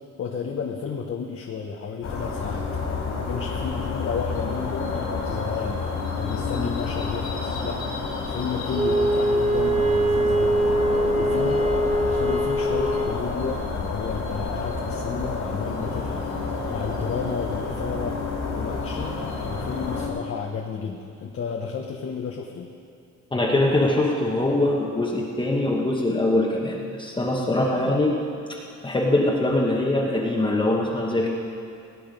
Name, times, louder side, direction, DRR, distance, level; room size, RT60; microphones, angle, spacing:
voice 1, 0.2-5.8 6.1-7.8 8.2-11.7 12.0-18.2 18.5-22.7, left 6 dB, 45° left, 1 dB, 0.9 m, -32 dB
sound 1, 2.0-20.1, left 4 dB, 65° left, 3.0 m, -29 dB
Wind instrument woodwind instrument, 8.7-13.2, right 1 dB, 20° right, 0.6 m, -22 dB
voice 2, 23.3-28.1 28.8-31.3, left 1 dB, 15° left, -3 dB, 1.1 m, -22 dB
18.5 x 9.4 x 5.3 m, 2.4 s
cardioid pair, 165°, 31 cm